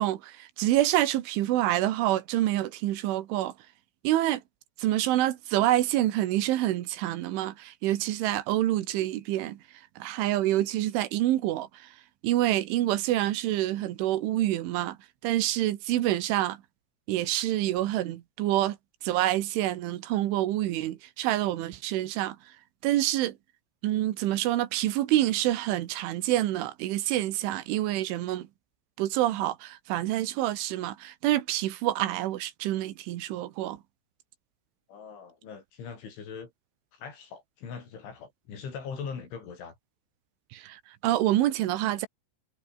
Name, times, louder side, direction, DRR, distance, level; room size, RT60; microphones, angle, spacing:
voice 1, 0.0-3.5 4.0-4.4 4.8-9.6 10.0-11.7 12.2-15.0 15.2-16.6 17.1-18.8 19.0-22.4 22.8-23.4 23.8-28.5 29.0-33.8 40.5-42.1, right 14 dB, 90° right, 4.0 m, -27 dB
voice 2, 34.9-36.5 36.9-39.8, left 6 dB, 80° left, 8.1 m, -41 dB
omnidirectional pair, 5.3 m